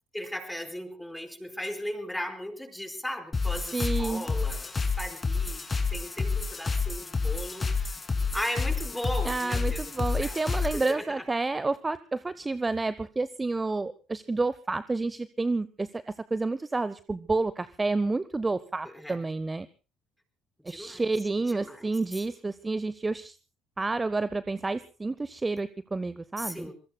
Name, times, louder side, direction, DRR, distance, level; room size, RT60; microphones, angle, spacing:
voice 1, 0.1-11.2 18.8-19.2 20.7-21.0 21.5-21.9 26.4-26.7, equal, 5° left, 7 dB, 4.9 m, -37 dB
sound 1, 3.3-10.9, left 4 dB, 25° left, 2.9 m, -29 dB
voice 2, 3.7-4.3 9.2-19.7 20.6-23.4 23.8-26.7, right 3 dB, 20° right, 16 dB, 0.8 m, -30 dB
26.5 x 23.0 x 2.3 m, 0.34 s
figure-of-eight pair, 55°, 0 cm